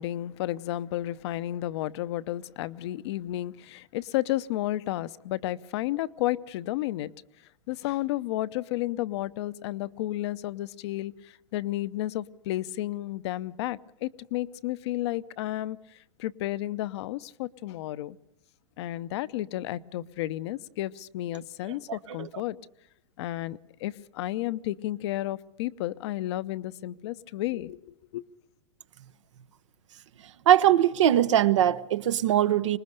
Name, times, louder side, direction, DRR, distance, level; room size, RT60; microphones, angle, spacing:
voice 1, 0.0-7.1 7.7-18.2 18.8-22.6 23.2-28.2, left 15 dB, 60° left, 0.8 m, -32 dB
voice 2, 30.5-32.8, right 11 dB, 70° right, 1.0 m, -21 dB
25.0 x 20.0 x 6.7 m
hypercardioid pair, 110°, 16 cm